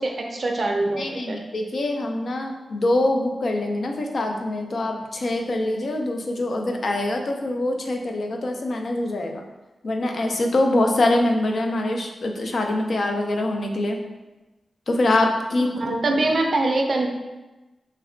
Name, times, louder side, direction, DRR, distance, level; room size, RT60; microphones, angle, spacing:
voice 1, 0.0-1.4 15.7-17.1, right 2 dB, 40° right, 1 dB, 0.4 m, -23 dB
voice 2, 1.0-9.4 9.8-14.0 14.9-15.7, left 2 dB, 55° left, 3 dB, 0.4 m, -24 dB
3.2 x 2.1 x 3.7 m, 1.1 s
wide cardioid pair, 170°, 0 cm